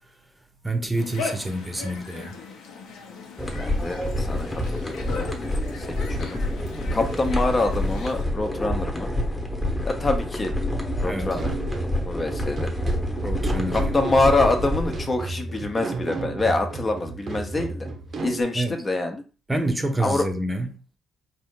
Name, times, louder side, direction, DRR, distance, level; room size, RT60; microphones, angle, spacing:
voice 1, 0.6-2.3 11.0-11.4 13.2-14.0 18.5-18.8 19.5-20.8, right 1 dB, 15° right, 0.7 m, -28 dB
sound 1, 0.9-8.2, left 4 dB, 90° left, 0.9 m, -39 dB
sound 2, 3.4-15.0, left 1 dB, 15° left, 1.1 m, -27 dB
voice 2, 3.6-5.3 5.8-6.4 6.9-9.1 9.8-10.5 11.0-11.5 12.1-12.7 13.7-17.9 18.2-19.2 20.0-20.3, left 2 dB, 30° left, 0.8 m, -25 dB
sound 3, 11.4-18.4, right 3 dB, 50° right, 0.7 m, -33 dB
4.3 x 2.6 x 3.7 m
cardioid pair, 90°, 0 cm